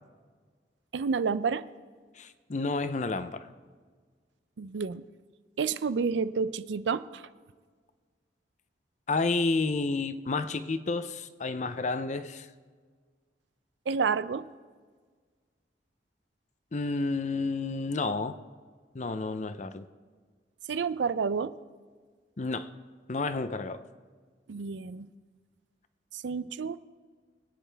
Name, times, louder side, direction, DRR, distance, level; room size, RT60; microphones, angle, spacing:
voice 1, 0.9-1.6 4.6-5.0 5.6-7.2 13.9-14.4 20.7-21.5 24.5-25.1 26.1-26.8, right 5 dB, 80° right, 15 dB, 0.5 m, -29 dB
voice 2, 2.1-3.5 9.1-12.5 16.7-18.4 18.9-19.9 22.4-22.7 23.1-23.8, left 3 dB, 40° left, 12 dB, 0.6 m, -30 dB
22.5 x 9.4 x 3.4 m, 1.5 s
head